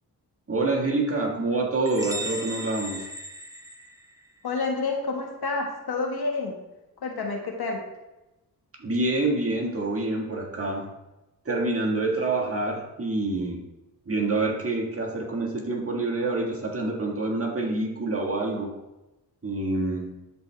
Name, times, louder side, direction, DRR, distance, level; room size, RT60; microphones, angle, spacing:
voice 1, 0.5-3.1 8.8-10.9 11.5-13.6 14.1-18.7 19.4-20.1, right 2 dB, 35° right, -1 dB, 1.8 m, -27 dB
sound 1, 1.9-4.4, right 1 dB, 10° right, 1.0 m, -36 dB
voice 2, 4.4-6.5 7.0-7.8, left 3 dB, 65° left, 0 dB, 1.8 m, -29 dB
12.5 x 4.3 x 3.4 m, 1.0 s
cardioid pair, 70°, 40 cm